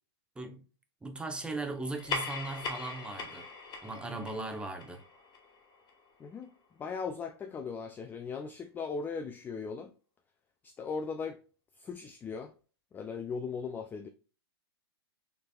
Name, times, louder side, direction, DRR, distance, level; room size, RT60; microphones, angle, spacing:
voice 1, 1.0-3.5 3.8-5.0, right 2 dB, 5° right, 0.8 m, -38 dB
sound 1, 1.8-6.7, left 4 dB, 30° left, 1.1 m, -41 dB
voice 2, 6.2-6.5 6.8-9.9 10.6-11.4 11.8-12.5 12.9-14.1, left 5 dB, 15° left, 0.3 m, -38 dB
6.3 x 3.3 x 2.3 m
hypercardioid pair, 115°, 14 cm